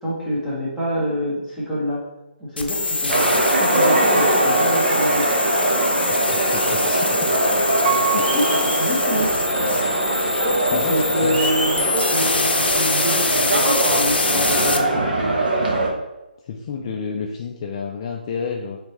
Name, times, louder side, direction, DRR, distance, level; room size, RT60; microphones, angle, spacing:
voice 1, 0.0-2.0 2.4-3.3 3.6-5.4 8.3-10.0 10.3-15.2, equal, 5° right, -9 dB, 1.3 m, -27 dB
sound 1, 2.6-14.8, left 3 dB, 80° left, 0.6 m, -24 dB
sound 2, 3.1-15.9, right 1 dB, 60° right, 0.9 m, -21 dB
voice 2, 6.5-7.3 8.1-8.4 10.1-10.2 10.7-11.4 16.5-18.8, left 6 dB, 35° left, 1 dB, 0.4 m, -30 dB
Piano, 7.8-9.8 10.4-10.5, right 10 dB, 40° right, 0.4 m, -28 dB
4.3 x 3.3 x 2.9 m, 0.99 s
hypercardioid pair, 155°, 5 cm